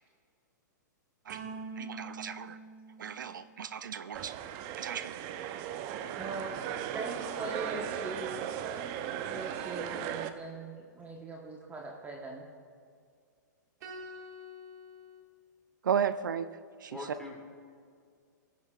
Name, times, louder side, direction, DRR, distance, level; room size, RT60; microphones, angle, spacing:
sound 1, 1.3-3.8 7.5-9.4 13.8-15.2, right 3 dB, 60° right, 1.7 m, -46 dB
voice 1, 1.8-2.6 3.0-4.3 4.8-5.1 15.8-16.5 16.8-17.0, right 8 dB, 80° right, 13 dB, 0.4 m, -34 dB
sound 2, 4.1-10.3, right 10 dB, 40° right, 0.6 m, -37 dB
voice 2, 6.1-6.6 6.9-8.4 9.0-12.4, right 2 dB, 15° right, -1 dB, 1.1 m, -41 dB
voice 3, 16.9-17.4, left 2 dB, 5° left, -2 dB, 2.5 m, -42 dB
19.5 x 9.4 x 2.4 m, 2.1 s
hypercardioid pair, 120°, 10 cm